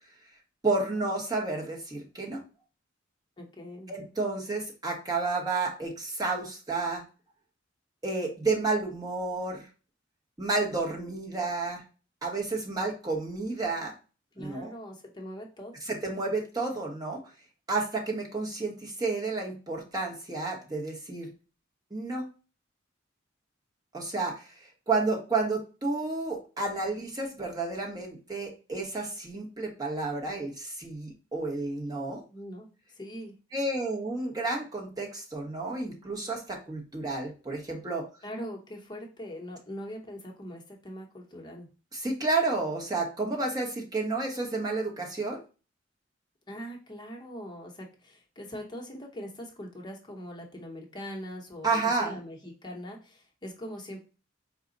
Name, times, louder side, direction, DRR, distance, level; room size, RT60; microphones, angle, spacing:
voice 1, 0.6-2.4 3.9-7.0 8.0-9.6 10.4-11.8 12.2-13.9 14.4-14.7 15.8-17.2 17.7-21.3 21.9-22.3 23.9-32.2 33.5-38.1 41.9-45.4 51.6-52.2, right 3 dB, 20° right, -1 dB, 1.0 m, -31 dB
voice 2, 3.4-3.9 14.3-15.7 32.3-33.3 38.2-41.7 46.5-54.0, equal, 20° left, 0 dB, 0.8 m, -42 dB
4.7 x 2.1 x 3.8 m, 0.34 s
head